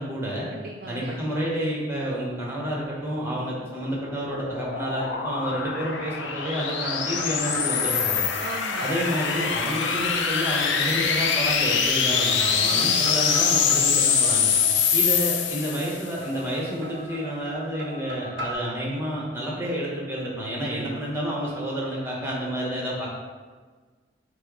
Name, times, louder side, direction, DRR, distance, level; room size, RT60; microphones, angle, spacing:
voice 1, 0.0-0.5 0.9-8.3 8.8-14.5 14.9-23.1, equal, 15° right, -4 dB, 0.9 m, -29 dB
voice 2, 0.5-1.2 8.4-8.9 12.4-12.8, right 3 dB, 50° right, 1 dB, 0.3 m, -38 dB
sound 1, 3.6-16.1, left 6 dB, 85° left, 0.4 m, -24 dB
sound 2, 6.5-10.0 11.2-11.8 12.1-15.3 16.2-18.5, right 1 dB, 85° right, 0.6 m, -39 dB
6.1 x 2.0 x 3.7 m, 1.4 s
head